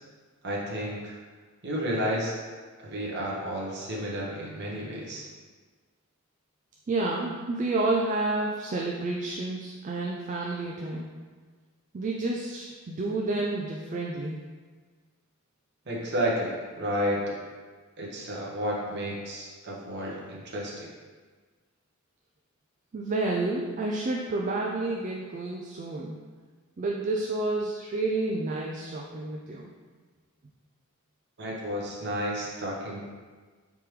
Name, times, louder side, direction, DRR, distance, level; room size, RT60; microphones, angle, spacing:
voice 1, 0.4-1.2 1.6-2.4 2.8-5.2 15.9-17.2 18.0-20.9 31.4-33.0, equal, 55° right, -4 dB, 1.0 m, -31 dB
voice 2, 6.9-11.1 11.9-14.5 22.9-26.3 26.8-29.7, right 2 dB, 35° right, -2 dB, 0.3 m, -30 dB
4.5 x 3.5 x 3.2 m, 1.4 s
head